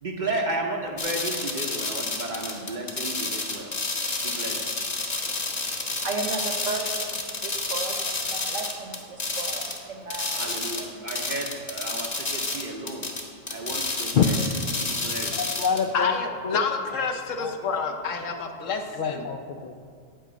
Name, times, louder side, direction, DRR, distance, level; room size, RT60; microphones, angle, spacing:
voice 1, 0.0-3.8 4.2-4.7 10.3-13.1 13.5-14.5 14.9-15.3, right 2 dB, 45° right, 2 dB, 0.7 m, -33 dB
sound 1, 1.0-9.8 10.1-15.8, left 3 dB, 35° left, 0.9 m, -30 dB
voice 2, 5.3-10.4, right 3 dB, 65° right, 4 dB, 1.3 m, -35 dB
voice 3, 15.3-16.1 17.4-17.5 19.0-19.8, left 7 dB, 90° left, 4 dB, 0.4 m, -25 dB
voice 4, 15.9-19.3, left 5 dB, 65° left, 5 dB, 1.1 m, -28 dB
9.1 x 5.0 x 7.5 m, 2.2 s
omnidirectional pair, 1.4 m